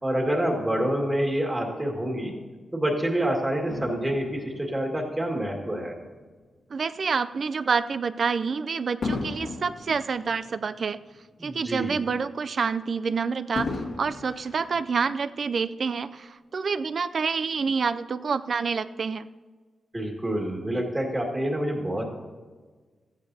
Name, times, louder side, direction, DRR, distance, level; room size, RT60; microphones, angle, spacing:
voice 1, 0.0-2.4 2.7-5.9 11.4-12.0 19.9-22.1, right 1 dB, 15° right, 1 dB, 2.0 m, -27 dB
Fireworks, 3.7-6.3 6.9-7.1 9.0-11.5 11.9-12.0 13.6-15.4 16.2-16.3, left 3 dB, 55° left, 1.5 m, -36 dB
voice 2, 6.7-11.0 11.4-19.2, right 5 dB, 50° right, 14 dB, 0.3 m, -28 dB
15.0 x 14.0 x 2.8 m, 1.4 s
wide cardioid pair, 145°, 0 cm